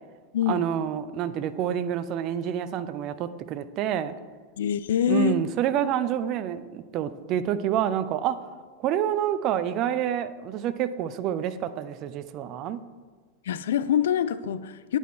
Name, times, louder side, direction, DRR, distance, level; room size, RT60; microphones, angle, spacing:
voice 1, 0.5-4.2 5.1-8.4 8.8-12.8, right 10 dB, 40° right, 12 dB, 0.4 m, -28 dB
voice 2, 4.6-5.4 13.4-15.0, left 9 dB, 60° left, 14 dB, 0.3 m, -25 dB
9.1 x 4.5 x 4.2 m, 1.4 s
figure-of-eight pair, 90°, 0 cm